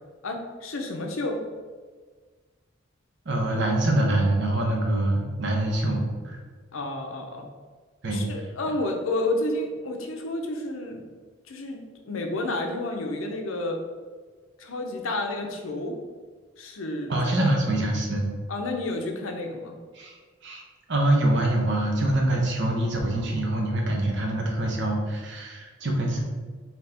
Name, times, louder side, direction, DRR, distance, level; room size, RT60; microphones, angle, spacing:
voice 1, 0.2-1.4 6.7-7.5 8.1-11.0 11.5-13.8 14.6-16.0 16.6-17.6 18.5-19.8, left 2 dB, 85° left, 3 dB, 0.6 m, -30 dB
voice 2, 3.2-6.4 8.0-8.2 17.1-18.3 19.9-20.2 20.4-20.6 20.9-26.2, right 1 dB, 60° right, 0 dB, 0.8 m, -24 dB
4.2 x 2.9 x 3.4 m, 1.5 s
head